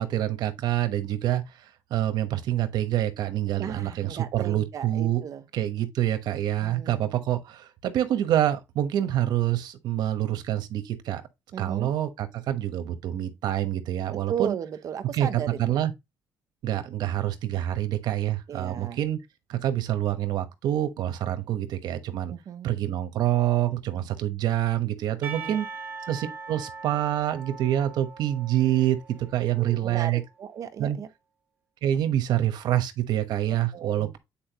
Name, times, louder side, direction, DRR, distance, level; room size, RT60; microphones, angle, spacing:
voice 1, 0.0-5.2 5.5-11.2 11.6-14.6 15.1-15.9 16.6-19.2 19.5-22.3 22.6-25.7 26.1-29.0 29.3-30.2 30.8-31.0 31.8-34.2, right 12 dB, 80° right, 1.1 m, -26 dB
voice 2, 3.5-5.4 6.6-7.1 11.5-11.9 14.1-15.6 18.5-19.0 22.3-22.7 25.4-25.6 29.6-31.1 33.7-34.1, right 8 dB, 55° right, 0.8 m, -35 dB
Percussion / Church bell, 25.2-30.2, right 4 dB, 25° right, 2.0 m, -41 dB
8.6 x 4.4 x 2.9 m
cardioid pair, 140°, 7 cm